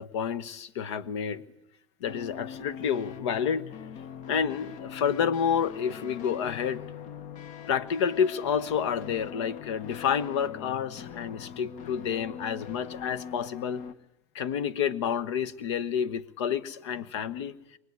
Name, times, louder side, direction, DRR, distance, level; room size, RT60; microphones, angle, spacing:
voice 1, 0.0-1.4 2.0-3.7 4.3-6.8 7.7-13.8 14.3-17.5, left 7 dB, 85° left, 15 dB, 1.3 m, -29 dB
sound 1, 2.1-13.9, left 8 dB, 60° left, 1.4 m, -42 dB
24.5 x 19.0 x 9.6 m, 0.86 s
supercardioid pair, 100°, 14 cm